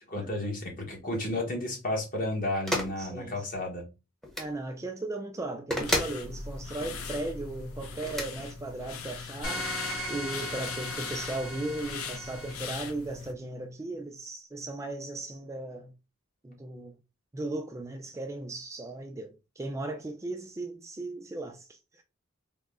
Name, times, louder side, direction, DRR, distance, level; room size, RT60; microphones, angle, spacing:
voice 1, 0.1-3.8, left 1 dB, 40° left, 1.1 m, -32 dB
sound 1, 2.7-2.9 4.2-4.5 5.7-6.2 8.0-8.3, equal, ahead, 0.7 m, -29 dB
voice 2, 3.0-3.5 4.4-9.7 10.1-15.9 16.4-17.0 17.3-22.0, right 2 dB, 15° right, 0.3 m, -37 dB
sound 2, 5.8-13.3, left 5 dB, 90° left, 0.6 m, -40 dB
sound 3, 9.4-12.5, equal, 65° left, 1.2 m, -37 dB
3.6 x 2.1 x 3.4 m
head